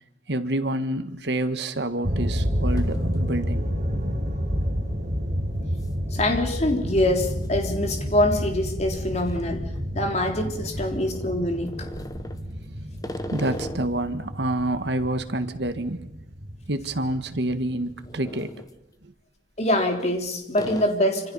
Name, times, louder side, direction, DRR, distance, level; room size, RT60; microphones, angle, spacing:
voice 1, 0.3-3.7 10.0-10.1 13.3-16.1 16.7-18.5 19.0-19.1, right 1 dB, 65° right, 10 dB, 1.6 m, -28 dB
sound 1, 1.1-1.2 1.8-2.2 2.4-3.5 3.8-3.9 4.9-5.2 5.8-6.0 6.2-6.3 7.3-10.4 10.9-14.0 14.4-16.8 17.0-17.2 17.8-18.8 19.6-20.2 20.6-20.8, equal, 20° left, 1.3 m, -40 dB
sound 2, 2.0-18.3, equal, 40° right, 4.8 m, -30 dB
voice 2, 6.1-9.7 9.9-11.9 19.6-21.3, left 1 dB, 35° left, 4 dB, 3.5 m, -24 dB
27.5 x 27.0 x 5.5 m, 0.81 s
head